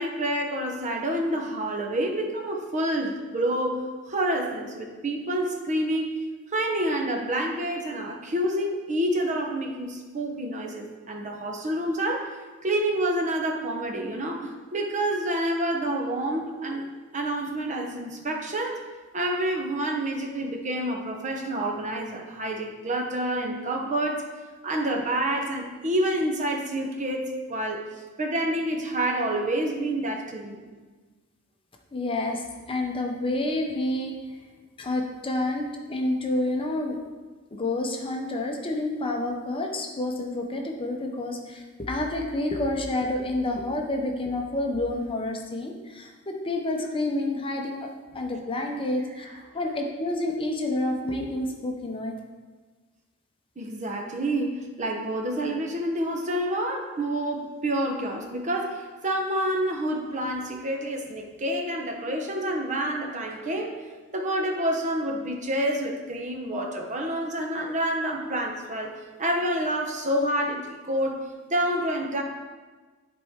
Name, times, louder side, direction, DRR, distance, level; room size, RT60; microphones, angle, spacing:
voice 1, 0.0-6.2 6.5-12.4 12.6-16.8 17.1-18.8 19.1-24.2 24.6-27.8 28.2-30.6 49.0-49.8 53.6-63.7 64.1-68.9 69.2-72.2, right 1 dB, 35° right, 2 dB, 0.8 m, -28 dB
voice 2, 31.9-32.4 32.7-34.1 34.8-35.6 35.9-37.0 37.6-41.4 41.8-45.7 46.5-47.9 48.1-49.3 49.5-52.1, left 2 dB, 25° left, 2 dB, 0.7 m, -28 dB
10.5 x 4.3 x 3.6 m, 1.4 s
head